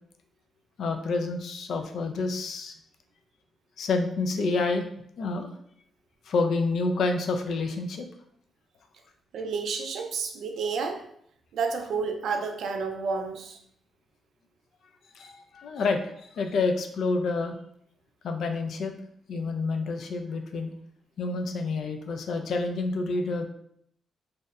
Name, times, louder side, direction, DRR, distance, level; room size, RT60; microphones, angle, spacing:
voice 1, 0.8-2.7 3.8-4.9 5.2-5.5 6.3-8.1 15.1-17.6 18.2-18.9 19.3-20.7 21.2-23.5, left 3 dB, 70° left, 5 dB, 0.3 m, -28 dB
voice 2, 9.3-11.0 11.5-13.6, right 5 dB, 75° right, 5 dB, 0.3 m, -30 dB
2.7 x 2.0 x 2.3 m, 0.68 s
cardioid pair, 95°, 0 cm